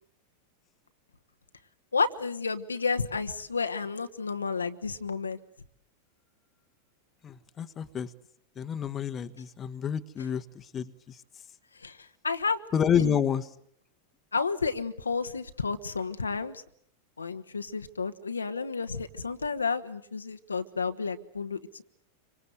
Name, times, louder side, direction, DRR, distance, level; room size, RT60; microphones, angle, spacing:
voice 1, 1.9-5.4 11.8-12.0 12.2-12.6 13.0-13.2 14.3-16.6 17.2-21.8, left 5 dB, 75° left, 9 dB, 1.3 m, -31 dB
voice 2, 7.2-8.1 8.6-10.9 12.7-13.5, left 8 dB, 25° left, 10 dB, 1.3 m, -29 dB
27.0 x 25.0 x 7.9 m, 0.67 s
figure-of-eight pair, 90°, 0 cm